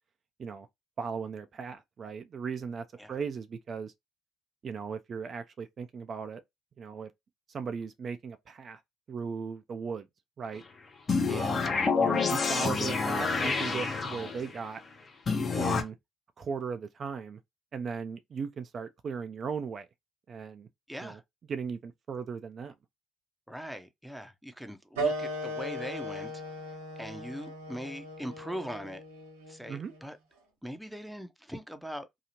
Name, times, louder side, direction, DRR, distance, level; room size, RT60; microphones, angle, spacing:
voice 1, 1.0-3.9 4.6-6.4 6.8-7.1 7.5-8.8 9.1-10.1 10.4-10.6 11.3-14.8 15.6-16.0 16.4-17.4 17.7-19.9 20.3-20.7 21.0-21.2 21.5-22.7 29.7-29.9, right 6 dB, 45° right, 0.3 m, -37 dB
sound 1, 11.1-14.6 15.3-15.8, left 4 dB, 40° left, 0.8 m, -28 dB
voice 2, 20.9-21.2 23.5-26.3 27.0-29.0 29.5-30.2 30.6-32.1, equal, ahead, 0.6 m, -41 dB
sound 2, 25.0-30.1, right 1 dB, 90° right, 0.8 m, -37 dB
2.8 x 2.4 x 2.8 m
hypercardioid pair, 55°, 0 cm